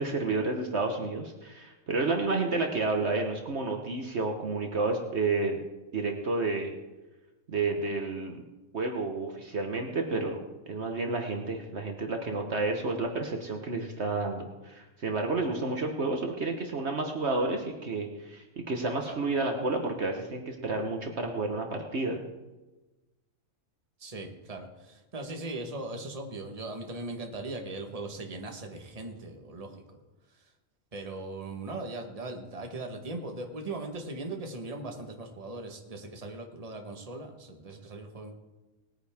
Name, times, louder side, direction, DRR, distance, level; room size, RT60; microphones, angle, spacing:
voice 1, 0.0-5.6 5.9-6.7 7.5-8.4 8.7-10.4 10.7-22.2, right 3 dB, 55° right, 3 dB, 1.4 m, -30 dB
voice 2, 24.0-30.0 30.3-30.5 30.9-38.3, right 2 dB, 25° right, 3 dB, 1.4 m, -39 dB
19.5 x 9.7 x 3.6 m, 1.1 s
omnidirectional pair, 1.4 m